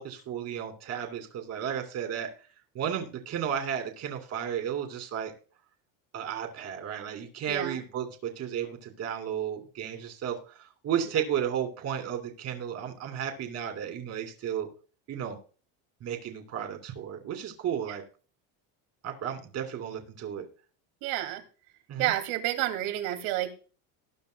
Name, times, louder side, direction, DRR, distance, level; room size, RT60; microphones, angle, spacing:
voice 1, 0.0-2.3 2.7-5.3 6.1-10.4 10.8-14.7 15.1-15.4 16.0-18.0 19.0-20.5 21.9-22.1, right 9 dB, 40° right, 4 dB, 2.8 m, -33 dB
voice 2, 7.5-7.8 17.9-18.0 21.0-21.4 22.0-23.5, right 14 dB, 75° right, 6 dB, 2.7 m, -30 dB
19.5 x 10.0 x 2.3 m, 0.39 s
cardioid pair, 150°, 40 cm